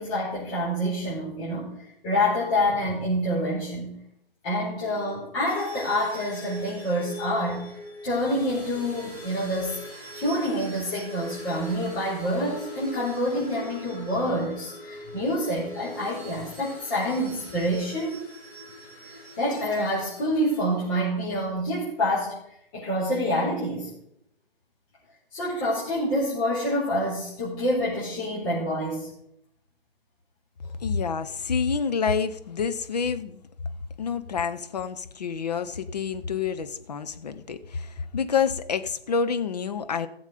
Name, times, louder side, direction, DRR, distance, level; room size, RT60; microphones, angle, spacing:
voice 1, 0.0-4.0 4.4-7.7 8.0-9.8 10.1-18.2 19.1-22.4 22.7-23.9 25.3-29.1, equal, 20° left, -9 dB, 4.4 m, -27 dB
sound 1, 5.4-21.1, left 1 dB, 90° left, 6.1 m, -42 dB
voice 2, 30.8-33.4 34.0-40.1, left 6 dB, 40° left, 9 dB, 0.9 m, -28 dB
17.5 x 7.3 x 5.1 m, 0.75 s
figure-of-eight pair, 150°, 31 cm